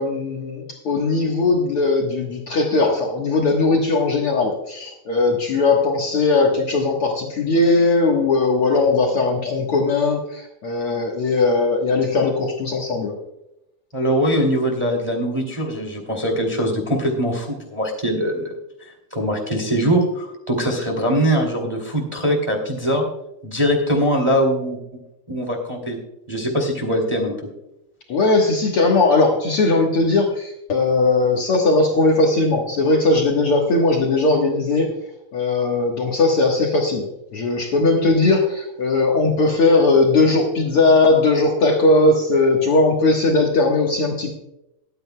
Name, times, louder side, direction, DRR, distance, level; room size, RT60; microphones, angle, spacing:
voice 1, 0.0-13.2 28.1-34.9 35.3-44.4, left 3 dB, 55° left, 0 dB, 1.9 m, -18 dB
voice 2, 13.9-18.5 18.8-23.0 23.4-24.8 25.3-26.0 26.3-27.5, equal, 10° right, 1 dB, 2.0 m, -22 dB
22.5 x 9.4 x 2.2 m, 0.85 s
omnidirectional pair, 3.4 m